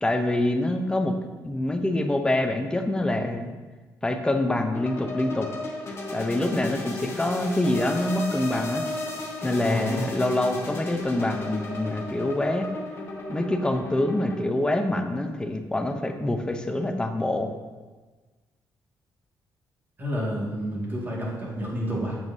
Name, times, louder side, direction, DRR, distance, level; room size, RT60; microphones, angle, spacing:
voice 1, 0.0-1.2 1.4-3.5 4.0-5.5 6.1-8.9 9.4-12.7 13.3-17.5, left 1 dB, 10° left, 6 dB, 0.6 m, -25 dB
sound 1, 4.7-14.4, left 2 dB, 35° left, 1.2 m, -34 dB
voice 2, 9.6-10.0 20.0-22.2, equal, 30° right, -4 dB, 1.9 m, -29 dB
7.8 x 7.2 x 2.7 m, 1.3 s
cardioid pair, 130°, 7 cm